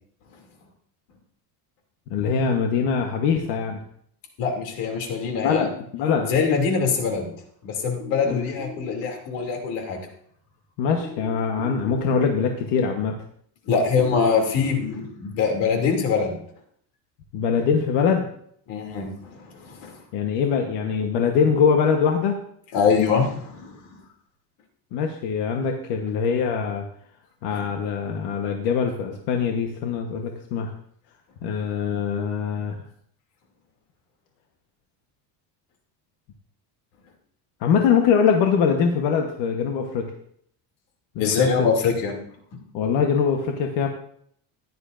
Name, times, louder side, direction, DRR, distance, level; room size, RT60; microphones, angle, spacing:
voice 1, 2.1-3.8 5.3-6.3 8.2-8.4 10.8-13.1 17.3-18.2 20.1-22.4 24.9-26.8 27.4-30.7 31.4-32.8 37.6-40.1 41.1-41.5 42.7-43.9, left 6 dB, 65° left, 3 dB, 1.2 m, -23 dB
voice 2, 4.4-5.7 6.2-7.3 7.6-10.0 13.7-16.4 18.7-20.0 22.7-24.0 27.5-27.7 41.2-42.1 42.5-42.6, left 5 dB, 90° left, 3 dB, 2.8 m, -24 dB
sound 1, 8.0-9.0 11.0-12.0 14.0-15.0, left 2 dB, 25° right, 1.4 m, -39 dB
15.0 x 11.0 x 2.6 m, 0.66 s
cardioid pair, 160°, 43 cm